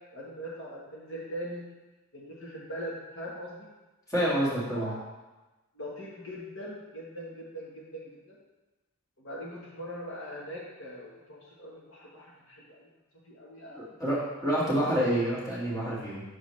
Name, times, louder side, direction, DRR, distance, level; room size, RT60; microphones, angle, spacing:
voice 1, 0.1-1.6 2.1-3.7 4.2-4.9 5.7-8.4 9.2-12.9 13.2-14.1 14.6-14.7, equal, 55° left, -4 dB, 1.1 m, -41 dB
voice 2, 4.1-4.9 13.7-16.2, right 1 dB, 15° left, -8 dB, 1.7 m, -28 dB
6.6 x 6.3 x 3.1 m, 1.1 s
head